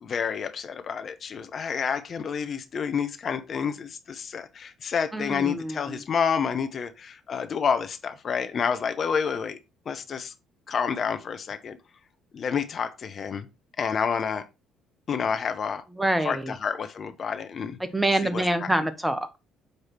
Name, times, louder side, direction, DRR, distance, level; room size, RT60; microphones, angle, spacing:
voice 1, 0.0-9.6 9.9-10.3 10.7-11.8 12.3-13.5 13.8-14.4 15.1-15.8 16.2-17.8 18.2-18.7, left 6 dB, 50° left, 0.8 m, -29 dB
voice 2, 5.1-6.0 16.0-16.5 17.8-19.4, right 1 dB, 5° right, 1.2 m, -26 dB
6.7 x 4.8 x 4.5 m
hypercardioid pair, 55°, 0 cm